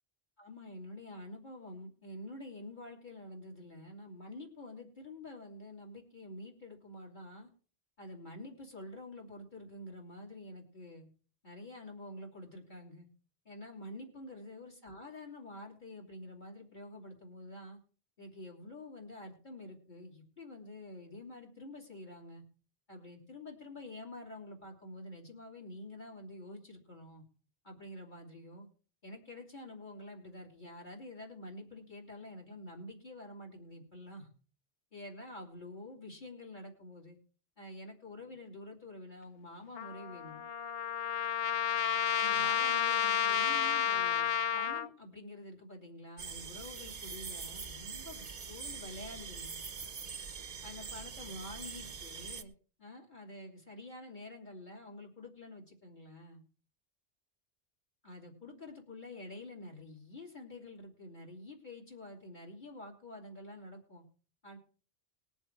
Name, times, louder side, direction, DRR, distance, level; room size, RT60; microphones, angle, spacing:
voice 1, 0.4-7.5 8.0-11.1 11.4-13.1 13.4-17.8 18.2-22.4 22.9-27.2 27.6-28.7 29.0-34.3 34.9-37.2 37.6-40.4 42.1-44.3 44.5-49.6 50.6-52.5 52.8-56.4 58.0-64.0 64.4-64.6, left 1 dB, 45° left, 2 dB, 2.9 m, -48 dB
Trumpet, 39.7-44.9, left 9 dB, 65° left, 0.9 m, -31 dB
sound 1, 46.2-52.4, right 5 dB, 40° right, 0.8 m, -44 dB
20.0 x 7.1 x 4.5 m, 0.39 s
omnidirectional pair, 1.1 m